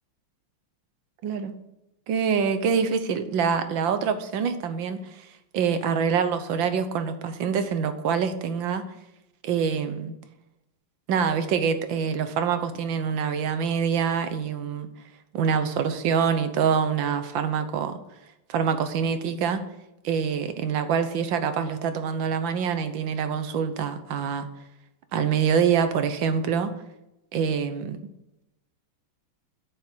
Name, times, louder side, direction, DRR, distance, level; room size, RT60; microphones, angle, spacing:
voice 1, 1.2-1.6 2.1-5.3 5.5-8.8 9.4-10.1 11.1-14.9 15.3-18.0 18.5-19.6 20.0-24.5 25.1-26.7 27.3-28.0, right 6 dB, 65° right, 9 dB, 1.6 m, -25 dB
8.5 x 6.9 x 6.2 m, 0.89 s
omnidirectional pair, 2.3 m